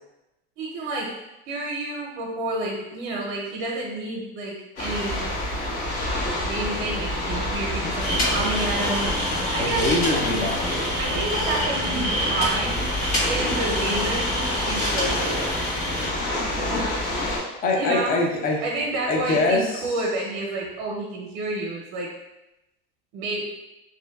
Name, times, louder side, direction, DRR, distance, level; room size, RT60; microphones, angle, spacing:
voice 1, 0.6-1.1 1.5-5.3 6.4-9.1 9.5-10.0 11.0-12.9 13.3-15.5 16.7-17.0 17.7-18.2 18.6-22.1 23.1-23.4, right 2 dB, 60° right, -2 dB, 0.6 m, -29 dB
sound 1, 4.8-17.4, left 1 dB, 85° left, 1.3 m, -28 dB
sound 2, 8.0-16.1, equal, 65° left, 1.2 m, -28 dB
voice 2, 9.6-10.8 17.6-18.6 19.0-20.0, left 2 dB, 30° left, 0 dB, 0.4 m, -24 dB
2.5 x 2.2 x 2.2 m, 0.95 s
supercardioid pair, 135°, 32 cm